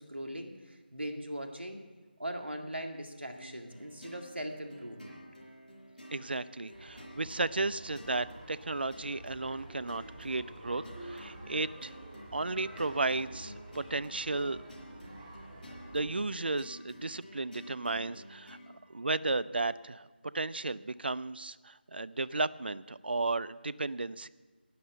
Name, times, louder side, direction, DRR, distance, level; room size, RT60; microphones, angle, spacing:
voice 1, 0.0-1.8 2.2-5.2, right 1 dB, 85° right, 4 dB, 2.1 m, -40 dB
sound 1, 3.3-18.8, equal, 45° left, 4.5 m, -51 dB
voice 2, 6.1-11.9 12.3-14.6 15.9-18.6 18.9-20.1 20.3-24.3, right 3 dB, 65° right, 16 dB, 0.4 m, -34 dB
sound 2, 6.7-16.3, right 1 dB, 15° right, 2.2 m, -49 dB
12.0 x 9.4 x 7.8 m, 1.4 s
figure-of-eight pair, 160°, 6 cm